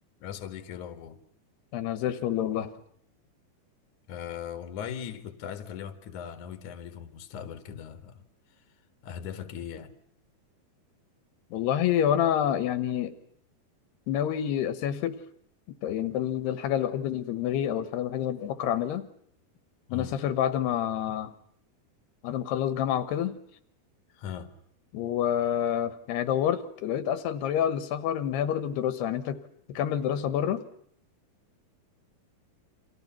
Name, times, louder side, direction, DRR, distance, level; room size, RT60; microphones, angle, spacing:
voice 1, 0.2-1.2 4.1-8.2 9.0-9.9 19.9-20.2 24.1-24.5, left 8 dB, 55° left, 2.9 m, -39 dB
voice 2, 1.7-2.7 11.5-13.1 14.1-15.2 15.8-19.1 19.9-21.3 22.2-23.3 24.9-29.4 29.7-30.6, left 10 dB, 85° left, 3.3 m, -28 dB
29.5 x 26.5 x 5.9 m
omnidirectional pair, 4.6 m